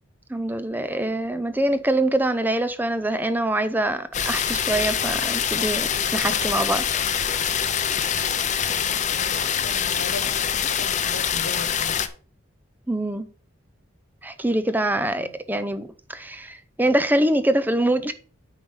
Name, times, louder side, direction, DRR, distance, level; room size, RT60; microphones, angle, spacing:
voice 1, 0.3-7.6 12.9-13.3 14.2-18.1, right 1 dB, 10° right, 0.5 m, -24 dB
sound 1, 4.1-12.1, left 8 dB, 35° left, 0.6 m, -24 dB
voice 2, 8.7-12.0 15.2-15.3, left 2 dB, 90° left, 1.4 m, -38 dB
8.9 x 4.7 x 5.5 m
head